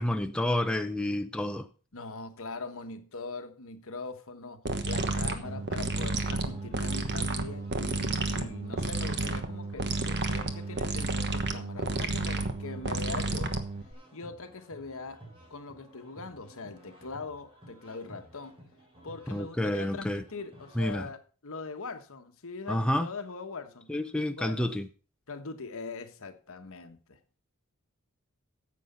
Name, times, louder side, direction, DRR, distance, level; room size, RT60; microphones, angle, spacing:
voice 1, 0.0-1.7 19.3-20.2 20.8-21.1 22.7-23.1 23.9-24.9, left 1 dB, 5° left, 0.5 m, -29 dB
voice 2, 1.9-13.5 14.1-15.2 15.5-18.6 19.0-23.9 24.3-24.7 25.3-27.2, left 3 dB, 65° left, 1.2 m, -41 dB
sound 1, 4.6-13.9, right 3 dB, 50° right, 1.2 m, -31 dB
sound 2, 4.9-21.1, right 1 dB, 25° right, 3.8 m, -53 dB
9.9 x 7.7 x 5.4 m
head